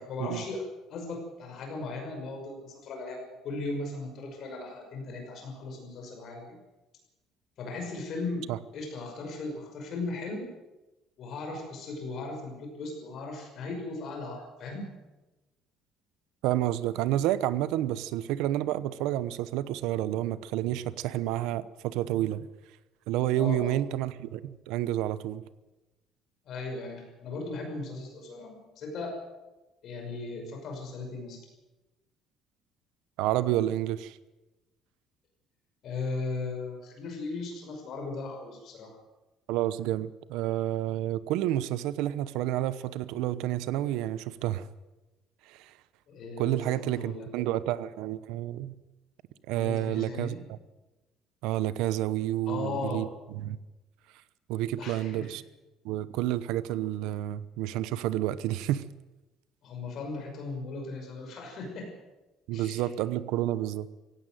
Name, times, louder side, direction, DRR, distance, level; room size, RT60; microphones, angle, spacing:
voice 1, 0.0-6.6 7.6-10.5 11.2-15.0 23.3-23.8 26.5-29.2 29.8-31.4 35.8-39.0 46.1-47.3 49.5-50.4 52.5-53.0 54.8-55.3 59.6-61.9 62.5-62.9, left 3 dB, 45° left, 2 dB, 6.0 m, -37 dB
voice 2, 16.4-22.5 23.1-25.4 33.2-34.2 39.5-44.7 45.5-45.7 46.4-48.7 49.5-50.4 51.4-53.6 54.5-55.4 55.8-58.8 62.5-63.9, right 13 dB, 85° right, 16 dB, 0.9 m, -29 dB
17.0 x 16.5 x 9.3 m, 1.1 s
cardioid pair, 175°, 0 cm